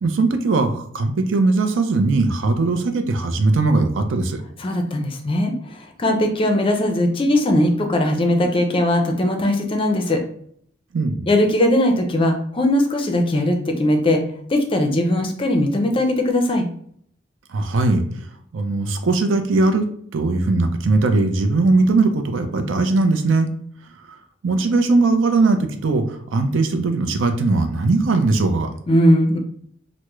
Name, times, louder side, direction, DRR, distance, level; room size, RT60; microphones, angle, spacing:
voice 1, 0.0-4.4 10.9-11.2 17.5-18.3 18.5-19.9 20.1-23.5 24.1-24.2 24.4-28.7, right 3 dB, 70° right, 7 dB, 0.5 m, -19 dB
voice 2, 4.6-10.2 11.3-14.2 14.5-16.7 28.9-29.4, left 1 dB, 25° left, 4 dB, 0.4 m, -19 dB
3.4 x 2.1 x 3.0 m, 0.65 s
head